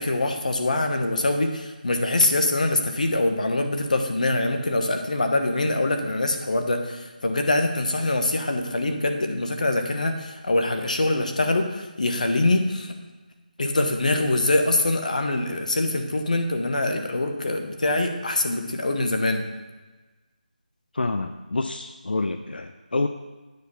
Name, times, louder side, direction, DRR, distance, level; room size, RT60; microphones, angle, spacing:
voice 1, 0.0-13.0 13.6-19.5, left 2 dB, 55° left, 5 dB, 1.1 m, -24 dB
voice 2, 20.9-23.1, left 2 dB, 85° left, 8 dB, 0.5 m, -27 dB
9.3 x 4.5 x 5.5 m, 1.2 s
figure-of-eight pair, 175°, 5 cm